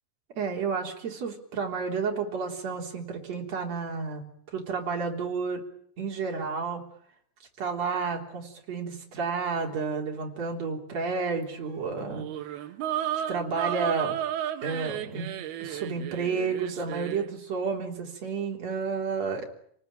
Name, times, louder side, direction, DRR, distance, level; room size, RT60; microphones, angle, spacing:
voice 1, 0.4-4.2 4.5-5.6 6.0-6.8 7.6-12.6 13.3-14.2 14.6-15.3 15.6-19.5, right 5 dB, 45° right, 1 dB, 4.6 m, -31 dB
sound 1, 12.0-17.3, right 11 dB, 90° right, 3.2 m, -33 dB
29.5 x 19.0 x 9.1 m, 0.70 s
omnidirectional pair, 4.3 m